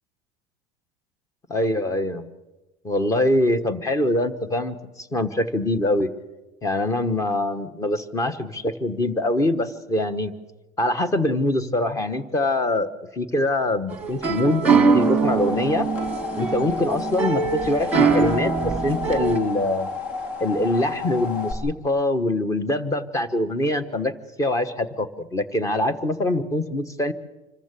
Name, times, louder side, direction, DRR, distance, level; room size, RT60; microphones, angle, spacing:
voice 1, 1.5-2.2 2.8-6.1 6.6-10.3 10.8-15.9 16.3-19.9 20.4-24.1 24.4-27.1, left 1 dB, 15° left, 12 dB, 1.2 m, -24 dB
sound 1, 13.9-19.4, right 5 dB, 5° right, 1.9 m, -22 dB
sound 2, 14.8-21.5, left 4 dB, 60° left, 4.2 m, -32 dB
26.0 x 14.5 x 8.3 m, 1.1 s
cardioid pair, 145°, 18 cm